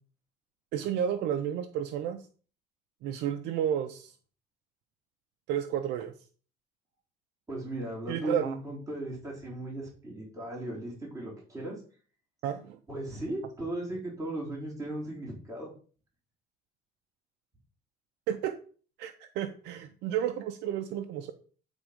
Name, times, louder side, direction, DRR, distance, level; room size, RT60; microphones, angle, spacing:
voice 1, 0.7-2.2 3.0-4.1 5.5-6.1 8.1-8.6 12.4-12.8 18.3-18.6 19.0-21.3, right 9 dB, 85° right, 7 dB, 0.6 m, -31 dB
voice 2, 7.5-11.8 12.9-15.7, right 1 dB, 20° right, -4 dB, 3.7 m, -37 dB
8.9 x 3.5 x 4.9 m, 0.41 s
cardioid pair, 110°, 17 cm